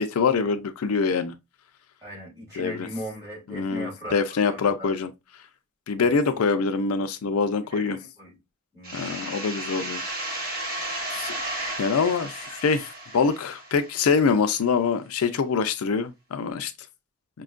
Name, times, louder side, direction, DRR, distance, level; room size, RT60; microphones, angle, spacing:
voice 1, 0.0-1.3 2.6-2.9 3.5-5.1 5.9-8.0 8.9-10.0 11.1-11.4 11.8-16.7, left 5 dB, 75° left, 0.4 m, -24 dB
voice 2, 2.0-4.9 6.0-6.4 7.7-8.4 8.7-9.3, equal, 15° right, 2.4 m, -39 dB
sound 1, 8.8-14.3, right 1 dB, 40° right, 1.0 m, -34 dB
5.0 x 2.3 x 2.4 m
head